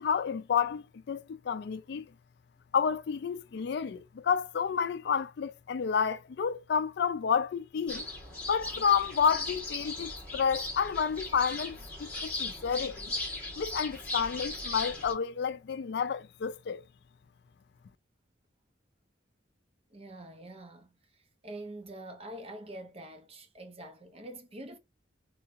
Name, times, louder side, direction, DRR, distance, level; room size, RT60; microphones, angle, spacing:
voice 1, 0.0-2.1 2.7-8.1 8.5-13.1 13.6-16.8, left 7 dB, 60° left, 0.3 m, -30 dB
sound 1, 7.9-15.1, left 2 dB, 5° left, 2.1 m, -38 dB
voice 2, 19.9-21.0 21.4-24.8, right 1 dB, 30° right, 0.8 m, -45 dB
3.7 x 3.6 x 2.6 m
head